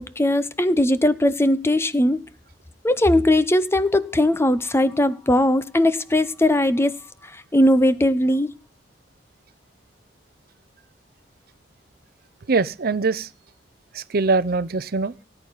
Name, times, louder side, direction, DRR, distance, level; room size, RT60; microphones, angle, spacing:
voice 1, 0.0-2.2 2.8-7.0 7.2-8.5, left 1 dB, 15° left, 0.6 m, -19 dB
voice 2, 12.5-13.3 13.9-15.1, right 3 dB, 55° right, 0.6 m, -22 dB
18.0 x 9.0 x 4.1 m
head